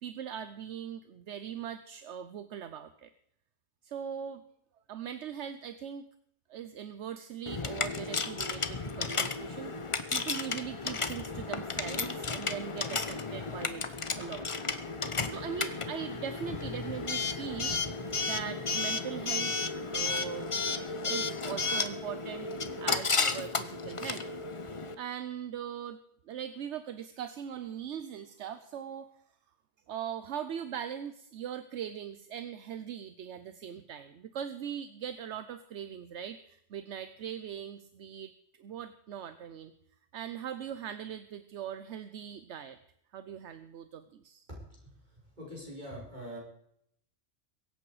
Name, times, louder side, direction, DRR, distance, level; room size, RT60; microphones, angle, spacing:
voice 1, 0.0-3.1 3.8-4.4 4.9-6.0 6.5-13.9 14.2-14.5 15.3-17.7 18.2-19.5 19.9-20.5 21.0-22.5 22.8-24.2 25.0-26.0 26.3-29.1 29.9-38.3 38.6-39.7 40.1-42.8 43.1-44.5, right 9 dB, 75° right, 11 dB, 1.0 m, -40 dB
Coin (dropping) / Alarm, 7.5-24.9, left 4 dB, 30° left, 0.8 m, -33 dB
voice 2, 45.4-46.4, equal, 40° right, -4 dB, 5.4 m, -43 dB
23.0 x 8.6 x 4.9 m, 0.72 s
omnidirectional pair, 1.2 m